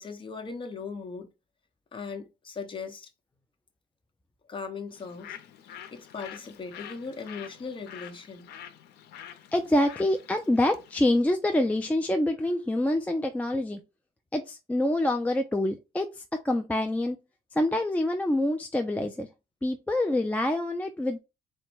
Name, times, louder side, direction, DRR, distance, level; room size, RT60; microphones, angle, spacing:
voice 1, 0.0-1.3 1.9-3.1 4.5-5.4 5.9-8.5, left 5 dB, 30° left, 1.0 m, -38 dB
Bird, 4.9-11.1, left 9 dB, 80° left, 0.7 m, -47 dB
voice 2, 9.5-13.8 14.3-17.2 17.5-19.3 19.6-21.2, left 1 dB, 10° left, 0.4 m, -26 dB
4.0 x 2.2 x 4.5 m
cardioid pair, 110°, 17 cm